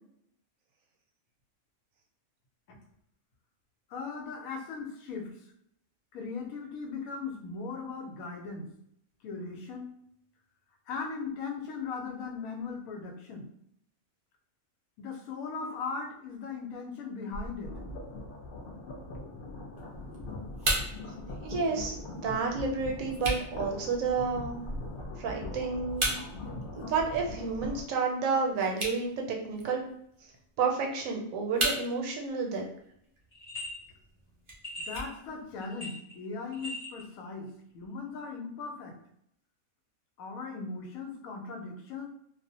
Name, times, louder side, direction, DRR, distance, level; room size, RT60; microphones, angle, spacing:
voice 1, 3.9-5.5 6.1-8.7 9.2-10.0 10.9-13.5 15.0-17.8 34.9-39.0 40.2-42.1, left 4 dB, 90° left, 2 dB, 1.0 m, -38 dB
sound 1, 17.3-27.8, left 1 dB, 65° left, 0.5 m, -41 dB
sound 2, 19.7-35.8, right 1 dB, 55° right, 0.3 m, -39 dB
voice 2, 21.4-24.6 25.2-26.1 26.7-29.2 29.5-29.8 30.6-32.6, right 4 dB, 80° right, 1 dB, 1.0 m, -30 dB
sound 3, 33.3-33.7 34.6-35.1 35.6-36.2 36.5-37.0, left 1 dB, 40° left, 0.9 m, -40 dB
2.4 x 2.0 x 2.7 m, 0.71 s
omnidirectional pair, 1.4 m